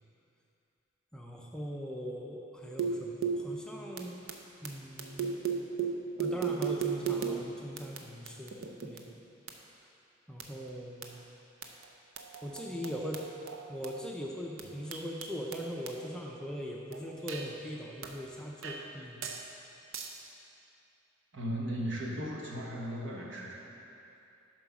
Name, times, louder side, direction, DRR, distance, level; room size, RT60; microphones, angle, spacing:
voice 1, 1.1-4.2 4.6-5.4 6.2-9.2 10.3-11.2 12.4-13.2 13.7-19.3, equal, 5° left, -2 dB, 0.5 m, -40 dB
sound 1, 2.6-3.6 4.0-4.7 5.0-7.4 7.8-9.1 9.5-9.6 10.4-10.5 10.7-10.8 11.0-11.1 11.6-11.8 12.2-13.9 14.6-16.0 16.9-17.5 18.0-18.2 18.6-18.9 19.2-19.5 19.9-20.2, right 6 dB, 85° right, 0.7 m, -35 dB
voice 2, 21.3-23.6, equal, 65° right, -2 dB, 1.2 m, -36 dB
7.7 x 4.9 x 5.9 m, 2.7 s
head